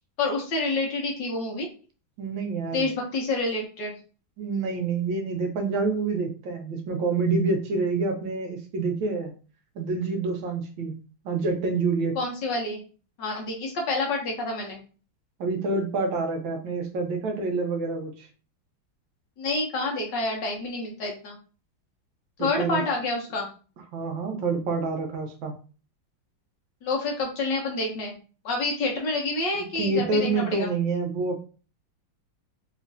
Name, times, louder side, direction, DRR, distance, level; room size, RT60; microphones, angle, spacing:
voice 1, 0.2-1.7 2.7-4.0 12.2-12.8 13.2-14.8 19.4-21.4 22.4-23.5 26.8-28.2 28.4-30.7, left 2 dB, 65° left, 0 dB, 1.4 m, -28 dB
voice 2, 2.2-2.9 4.4-9.3 9.8-11.0 11.2-12.2 15.4-18.3 22.6-22.8 23.9-25.5 29.6-31.4, right 3 dB, 75° right, 4 dB, 1.4 m, -27 dB
3.6 x 3.1 x 2.6 m, 0.37 s
omnidirectional pair, 2.3 m